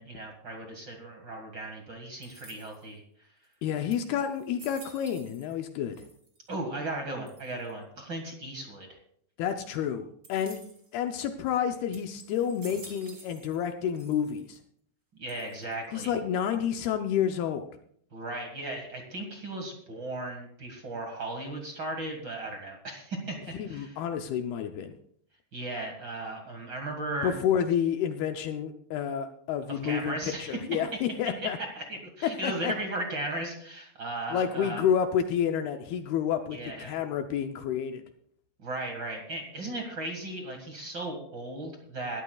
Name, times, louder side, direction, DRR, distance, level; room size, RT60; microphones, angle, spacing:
voice 1, 0.0-3.0 6.5-9.0 15.2-16.1 18.1-24.0 25.5-27.4 29.7-30.6 31.4-31.5 31.7-34.8 36.5-37.0 38.6-42.2, right 2 dB, 55° right, 2 dB, 1.2 m, -36 dB
sound 1, 2.2-3.0 3.5-3.6 3.9-5.6 5.9-6.5 7.3-7.7 10.2-10.9 11.4-11.6 11.9-13.7 13.9-14.6 15.3-15.8, right 2 dB, 30° right, 1.5 m, -51 dB
voice 2, 3.6-6.1 9.4-10.6 10.9-14.6 15.9-17.7 23.6-25.0 27.2-31.6 32.2-32.7 34.3-38.0, left 8 dB, 80° left, 6 dB, 2.3 m, -29 dB
21.0 x 14.5 x 2.4 m, 0.65 s
omnidirectional pair, 5.1 m